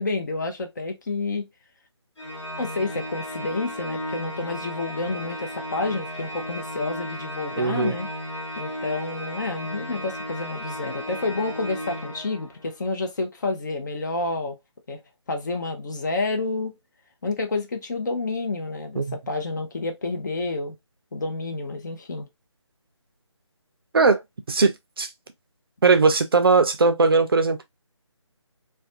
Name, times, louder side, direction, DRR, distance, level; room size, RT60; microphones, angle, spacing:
voice 1, 0.0-1.5 2.6-8.1 8.6-14.6 14.9-15.0 15.3-16.8 17.2-20.8 21.1-22.3, left 3 dB, 40° left, 0.6 m, -29 dB
Organ, 2.2-12.8, equal, 75° left, 1.2 m, -34 dB
voice 2, 7.6-7.9 19.0-19.2 23.9-24.2 24.5-25.1 25.8-27.6, right 4 dB, 50° right, 0.5 m, -19 dB
2.4 x 2.2 x 2.6 m
figure-of-eight pair, 155°, 16 cm